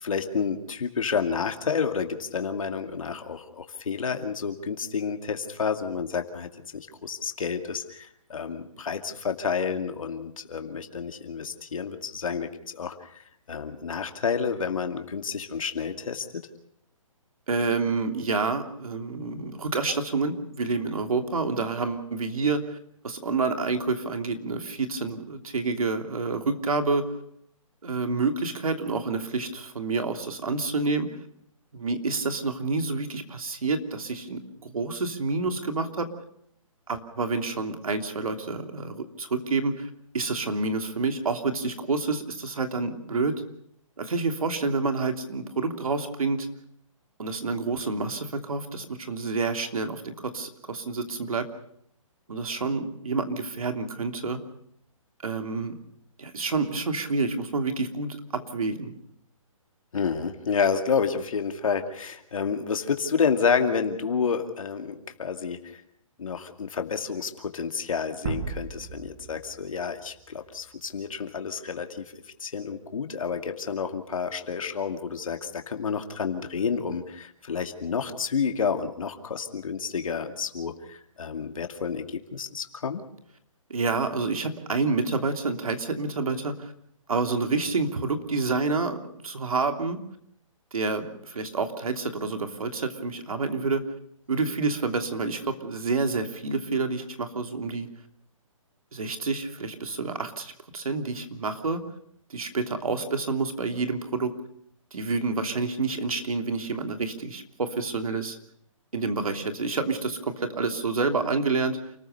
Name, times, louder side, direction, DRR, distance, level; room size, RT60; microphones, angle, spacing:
voice 1, 0.0-13.1 13.5-16.3 59.9-65.8 66.2-72.0 72.4-83.0, left 6 dB, 75° left, 5 dB, 2.4 m, -29 dB
voice 2, 17.5-22.8 23.0-27.1 27.8-31.1 31.7-36.1 36.9-39.9 40.1-43.3 44.0-46.5 47.2-51.4 52.3-54.4 55.2-55.8 56.2-58.9 83.7-86.7 87.1-89.0 89.2-90.0 90.7-93.8 94.3-97.9 98.9-101.8 102.3-104.3 104.9-108.4 108.9-111.8, right 3 dB, 85° right, 6 dB, 3.1 m, -28 dB
sound 1, 68.2-71.2, right 4 dB, 40° right, 3.3 m, -37 dB
29.0 x 14.5 x 6.8 m, 0.72 s
hypercardioid pair, 155°, 18 cm